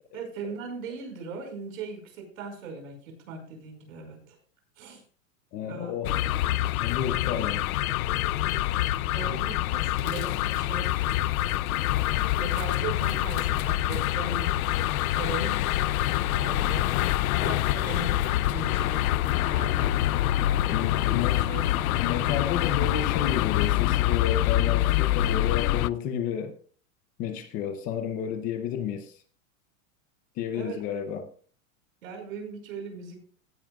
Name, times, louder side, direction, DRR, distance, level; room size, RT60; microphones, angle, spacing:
voice 1, 0.1-4.4 4.8-5.0 5.5-6.0 9.1-11.1 12.4-15.6 16.3-17.0 17.4-18.3 18.5-20.0 21.0-22.3 30.5-30.8 32.0-33.2, right 4 dB, 80° right, 5.0 m, -39 dB
voice 2, 5.5-6.2 6.8-7.6 20.7-21.4 22.0-26.5 27.2-29.2 30.4-31.3, left 8 dB, 20° left, 0.6 m, -31 dB
sound 1, 6.0-25.9, left 14 dB, 85° left, 0.6 m, -26 dB
16.5 x 9.7 x 2.3 m
supercardioid pair, 165°, 41 cm